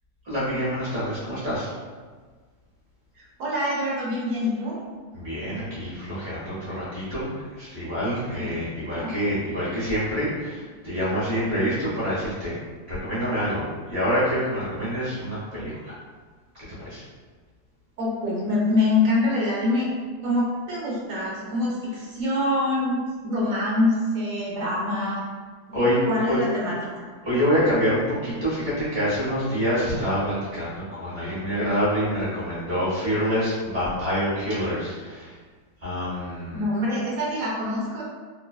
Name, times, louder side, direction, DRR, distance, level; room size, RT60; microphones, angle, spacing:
voice 1, 0.2-1.7 5.1-12.6 12.9-15.9 16.8-17.0 25.7-26.0 26.3-26.4 27.2-35.3 35.8-36.6, equal, 40° right, -10 dB, 1.1 m, -26 dB
voice 2, 3.2-4.8 8.3-9.1 18.0-19.9 20.2-25.3 25.7-27.1 36.5-38.0, left 2 dB, 60° right, -6 dB, 0.9 m, -25 dB
3.1 x 2.3 x 2.3 m, 1.5 s
omnidirectional pair, 2.0 m